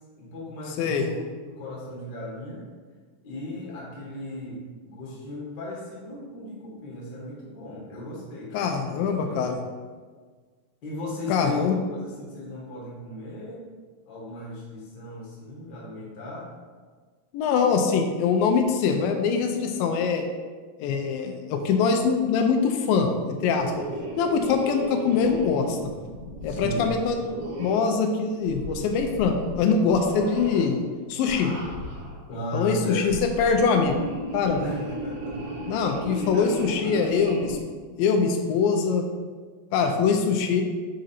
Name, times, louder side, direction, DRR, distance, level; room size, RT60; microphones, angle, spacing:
voice 1, 0.2-1.2 1.4-2.6 3.2-9.4 10.8-13.6 14.1-16.5 26.5-26.9 32.3-33.1 34.5-37.1, left 1 dB, 45° left, -5 dB, 1.6 m, -36 dB
voice 2, 8.5-9.6 11.3-11.8 17.3-20.2 20.8-23.1 23.4-23.9 24.2-25.8 26.4-27.3 27.6-30.8 31.1-31.5 32.5-34.0 34.3-34.6 35.7-37.6 38.0-39.1 39.7-40.6, left 5 dB, 90° left, 4 dB, 2.3 m, -23 dB
sound 1, 23.3-28.0 28.4-29.6 29.9-30.7 31.2-32.2 32.9-37.6, right 1 dB, 65° right, 2.4 m, -36 dB
6.3 x 3.9 x 4.2 m, 1.5 s
omnidirectional pair, 4.1 m